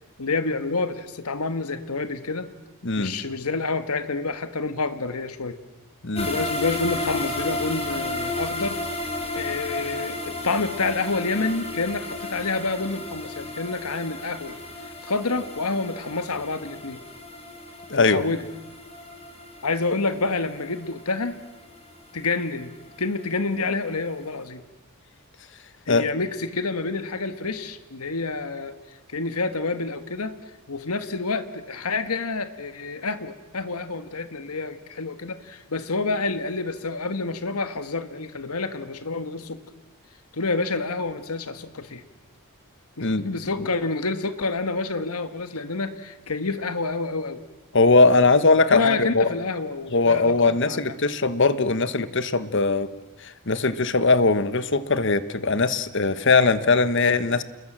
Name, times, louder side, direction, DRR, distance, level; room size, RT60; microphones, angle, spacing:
voice 1, 0.2-2.5 3.0-5.6 6.2-8.8 9.3-17.0 17.9-18.5 19.6-21.4 22.1-22.7 23.0-24.6 25.9-30.4 30.7-39.6 40.3-42.0 43.0-47.4 48.7-50.9, left 3 dB, 90° left, 10 dB, 1.6 m, -28 dB
sound 1, 6.2-23.2 23.6-23.7 24.1-24.2, left 2 dB, 25° left, 4.1 m, -33 dB
voice 2, 17.9-18.2 25.9-26.1 43.0-43.3 47.7-49.3 49.9-52.9 53.2-57.4, left 3 dB, 55° left, 14 dB, 1.2 m, -20 dB
29.0 x 21.0 x 7.5 m, 1.1 s
head